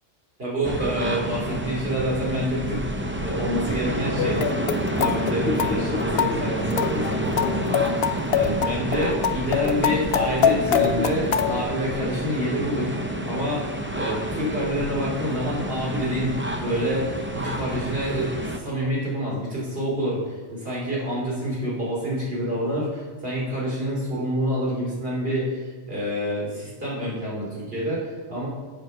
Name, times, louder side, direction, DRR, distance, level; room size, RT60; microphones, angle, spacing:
voice 1, 0.4-4.6 4.9-13.0 13.2-13.7 13.9-28.5, equal, 50° right, -5 dB, 3.4 m, -27 dB
sound 1, 0.6-18.6, right 1 dB, 15° right, 0.5 m, -29 dB
sound 2, 4.2-11.6, left 7 dB, 65° left, 0.7 m, -24 dB
7.7 x 7.5 x 5.7 m, 1.4 s
omnidirectional pair, 1.2 m